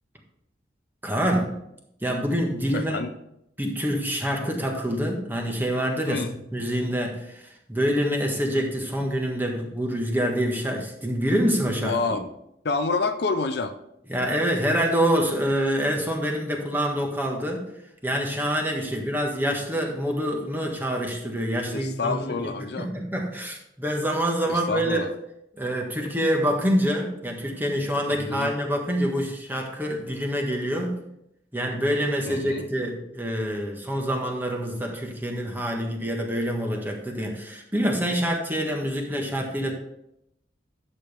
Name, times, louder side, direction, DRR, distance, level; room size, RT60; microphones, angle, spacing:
voice 1, 1.0-1.5 2.0-3.0 3.6-6.2 6.5-12.2 14.1-17.6 18.0-25.0 25.6-31.0 31.5-39.7, equal, 10° right, 1 dB, 1.5 m, -26 dB
voice 2, 2.7-3.1 6.1-6.3 11.8-12.3 12.6-13.7 21.7-22.9 24.5-25.1 28.1-28.5 32.3-32.7, left 4 dB, 65° left, 9 dB, 0.6 m, -28 dB
10.5 x 7.0 x 3.5 m, 0.80 s
head